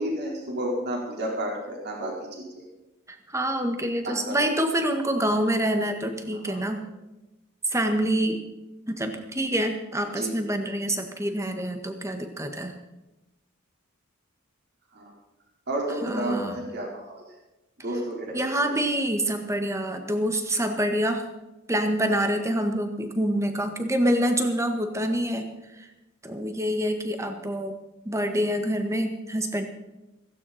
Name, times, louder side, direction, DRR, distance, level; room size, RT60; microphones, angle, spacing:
voice 1, 0.0-2.6 4.0-4.4 6.3-6.6 10.1-10.3 14.9-15.1 15.7-17.4 17.8-18.3 18.6-18.7, right 1 dB, 55° right, -2 dB, 4.4 m, -31 dB
voice 2, 3.1-6.9 7.7-8.4 8.9-12.8 16.0-16.6 18.3-21.2 21.7-25.5 25.8-25.9 26.2-27.7 28.1-29.7, right 1 dB, 15° right, 6 dB, 1.8 m, -26 dB
16.0 x 16.0 x 4.4 m, 0.99 s
head